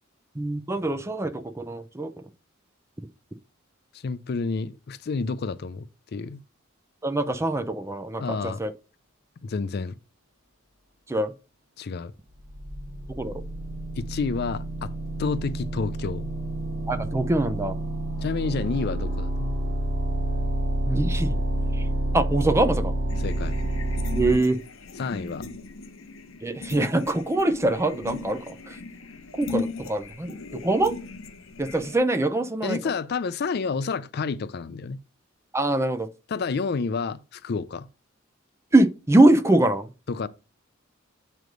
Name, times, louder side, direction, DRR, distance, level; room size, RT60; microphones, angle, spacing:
voice 1, 0.4-2.1 7.0-8.7 11.1-11.3 13.1-13.4 16.9-17.8 20.9-21.4 21.7-21.9 22.1-22.9 24.2-24.6 26.4-28.8 29.3-30.9 31.6-32.8 35.5-36.1 38.7-39.9, right 2 dB, 15° right, 0.4 m, -23 dB
voice 2, 3.9-5.9 6.1-6.4 8.2-8.6 9.4-10.0 11.8-12.1 14.0-14.9 15.2-16.3 18.2-19.6 23.2-23.6 25.0-25.5 32.6-35.0 36.3-37.9 40.1-40.3, left 4 dB, 50° left, 0.4 m, -29 dB
sound 1, 12.4-24.3, right 1 dB, 50° right, 2.1 m, -29 dB
sound 2, 23.1-32.0, left 3 dB, 80° left, 0.8 m, -38 dB
7.7 x 3.2 x 5.2 m
head